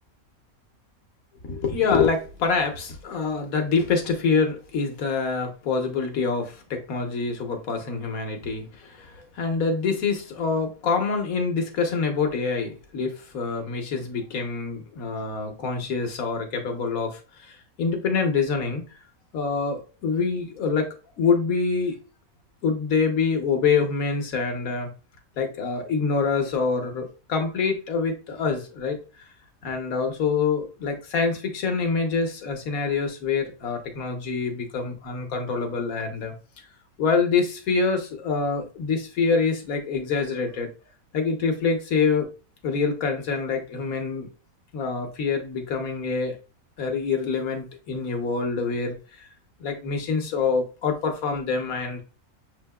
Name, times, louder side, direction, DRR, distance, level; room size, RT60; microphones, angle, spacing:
voice 1, 1.4-18.8 19.3-20.9 21.2-22.0 22.6-24.9 25.4-29.2 29.6-36.3 37.0-40.7 41.1-42.3 42.6-44.3 44.7-46.4 46.8-49.3 49.6-52.0, left 5 dB, 70° left, 4 dB, 1.4 m, -26 dB
7.2 x 2.8 x 2.3 m, 0.34 s
omnidirectional pair, 1.5 m